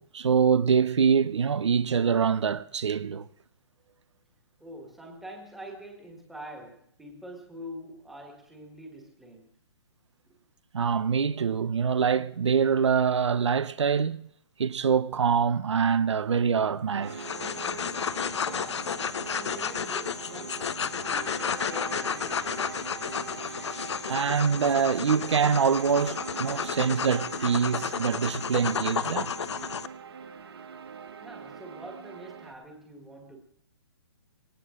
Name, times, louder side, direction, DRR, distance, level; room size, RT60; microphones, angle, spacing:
voice 1, 0.0-3.3 10.7-14.3 14.6-17.2 24.1-29.3, right 6 dB, 80° right, 0.9 m, -25 dB
voice 2, 4.6-9.5 18.4-23.1 31.2-33.4, right 1 dB, ahead, 1.7 m, -45 dB
sound 1, 16.9-32.5, right 6 dB, 60° right, 1.7 m, -42 dB
sound 2, 17.1-29.9, left 7 dB, 70° left, 0.8 m, -32 dB
18.5 x 18.5 x 3.8 m
hypercardioid pair, 175°, 15 cm